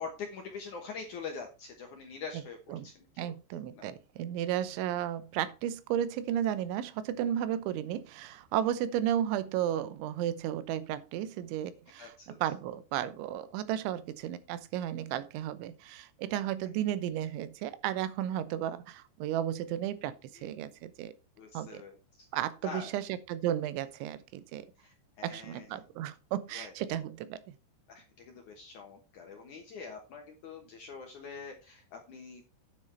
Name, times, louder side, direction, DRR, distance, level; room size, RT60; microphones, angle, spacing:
voice 1, 0.0-3.3 3.7-3.9 12.0-12.4 20.4-20.5 21.4-22.3 22.6-22.9 24.8-25.8 26.5-26.7 27.9-32.4, left 5 dB, 70° left, 1.9 m, -44 dB
voice 2, 3.2-21.1 21.5-21.8 22.3-24.7 25.2-27.6, right 11 dB, 90° right, 3.2 m, -34 dB
9.7 x 7.4 x 4.3 m
omnidirectional pair, 5.2 m